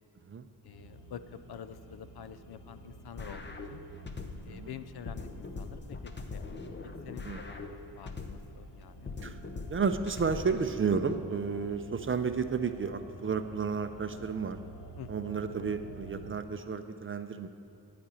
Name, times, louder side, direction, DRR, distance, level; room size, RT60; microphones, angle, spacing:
sound 1, 0.6-16.3, right 1 dB, 85° left, 1.7 m, -51 dB
voice 1, 0.6-3.8 4.5-6.6 7.0-9.1 15.0-15.1, left 8 dB, 70° left, 12 dB, 0.6 m, -47 dB
sound 2, 3.2-4.6 5.1-8.6 9.1-11.2, left 3 dB, 25° left, 0.7 m, -42 dB
voice 2, 9.7-14.6 15.1-17.5, right 5 dB, 35° right, 8 dB, 0.5 m, -32 dB
11.5 x 5.2 x 8.4 m, 2.7 s
wide cardioid pair, 120°, 40 cm